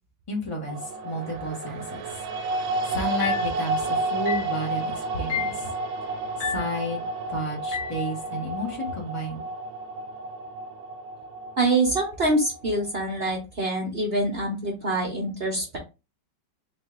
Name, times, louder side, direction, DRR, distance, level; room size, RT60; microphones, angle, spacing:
voice 1, 0.3-1.8 2.9-5.7 6.4-7.0 7.3-9.4, equal, 50° left, -1 dB, 0.3 m, -31 dB
sound 1, 0.7-12.9, right 2 dB, 75° right, 1.2 m, -31 dB
sound 2, 3.2-3.6 4.3-4.6 5.3-5.6 6.4-6.8 7.7-8.0, left 8 dB, 70° left, 1.4 m, -31 dB
voice 2, 11.6-15.8, right 2 dB, 55° right, 1 dB, 0.6 m, -25 dB
3.7 x 2.6 x 3.6 m, 0.27 s
omnidirectional pair, 2.2 m